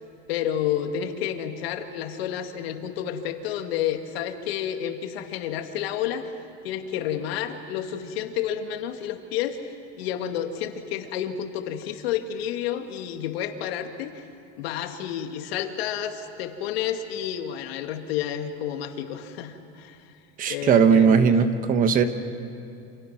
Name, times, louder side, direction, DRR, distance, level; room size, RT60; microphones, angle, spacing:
voice 1, 0.3-6.3 6.6-14.2 14.6-20.0 20.5-21.3, left 10 dB, 90° left, 6 dB, 2.1 m, -30 dB
voice 2, 20.4-22.0, right 6 dB, 30° right, 9 dB, 1.1 m, -18 dB
29.0 x 27.5 x 6.0 m, 2.7 s
cardioid pair, 170°, 30 cm